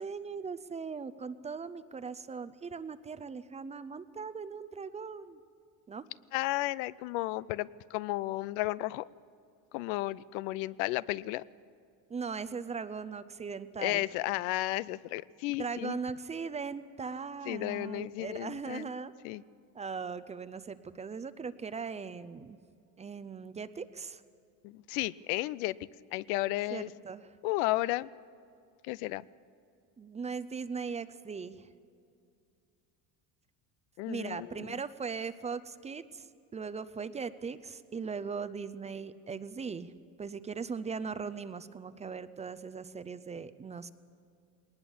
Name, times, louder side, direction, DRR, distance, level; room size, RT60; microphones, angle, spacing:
voice 1, 0.0-5.4 5.9-6.0 12.1-14.0 15.6-19.1 19.7-22.6 23.0-24.2 26.7-27.3 30.0-31.7 34.0-36.3 36.5-39.9 40.2-43.9, right 5 dB, 15° right, 13 dB, 0.5 m, -39 dB
voice 2, 6.3-9.1 9.7-11.4 13.8-16.0 17.5-18.9 19.2-19.4 24.6-25.8 26.1-26.9 27.4-28.1 28.8-29.2 34.0-34.8, left 18 dB, 90° left, 20 dB, 0.6 m, -33 dB
20.0 x 19.5 x 7.2 m, 2.4 s
cardioid pair, 135°, 40 cm